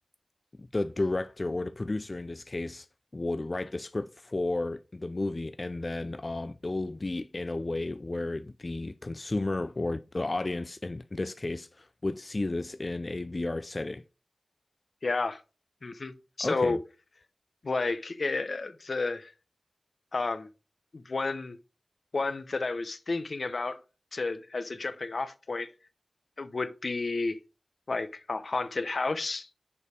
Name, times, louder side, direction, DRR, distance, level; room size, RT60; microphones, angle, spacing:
voice 1, 0.6-2.9 3.1-14.0 16.4-16.8, left 2 dB, 45° left, 0.3 m, -33 dB
voice 2, 15.0-15.4 15.8-16.1 16.4-16.8 17.6-19.3 20.1-20.5 20.9-21.6 22.1-23.8 24.1-25.7 26.4-27.4 27.9-29.5, left 3 dB, 80° left, 0.7 m, -31 dB
6.9 x 5.1 x 4.9 m
wide cardioid pair, 70°, 0 cm